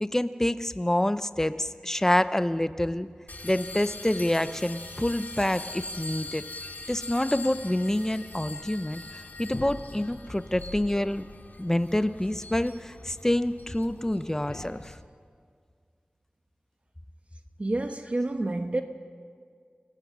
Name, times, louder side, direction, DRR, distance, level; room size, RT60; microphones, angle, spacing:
voice 1, 0.0-3.1 3.4-6.4 6.9-9.0 9.4-11.3 11.6-14.9, left 1 dB, 15° left, 0.7 m, -27 dB
sound 1, 3.3-15.0, left 2 dB, 60° left, 2.1 m, -42 dB
voice 2, 17.6-18.8, right 2 dB, 40° right, 1.1 m, -28 dB
29.0 x 18.0 x 6.2 m
wide cardioid pair, 75°, 3 cm